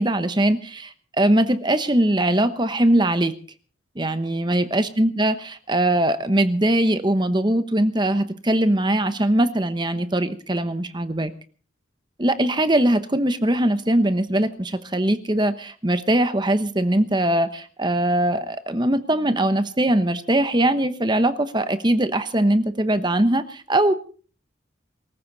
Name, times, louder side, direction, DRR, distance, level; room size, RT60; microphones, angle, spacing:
voice 1, 0.0-3.3 4.0-11.3 12.2-23.9, right 1 dB, 20° right, 11 dB, 1.0 m, -21 dB
23.5 x 14.5 x 4.1 m, 0.40 s
head